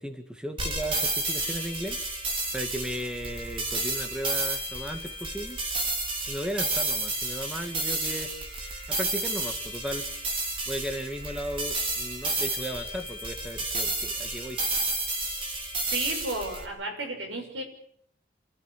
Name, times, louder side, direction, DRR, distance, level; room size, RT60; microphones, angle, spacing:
voice 1, 0.0-2.0 2.5-5.6 6.3-8.3 8.9-10.1 10.7-14.6, equal, 5° right, 5 dB, 2.0 m, -35 dB
sound 1, 0.6-16.6, right 2 dB, 30° right, 3.9 m, -31 dB
voice 2, 15.9-17.6, right 2 dB, 80° right, 4 dB, 6.8 m, -33 dB
29.0 x 15.0 x 8.5 m, 0.69 s
head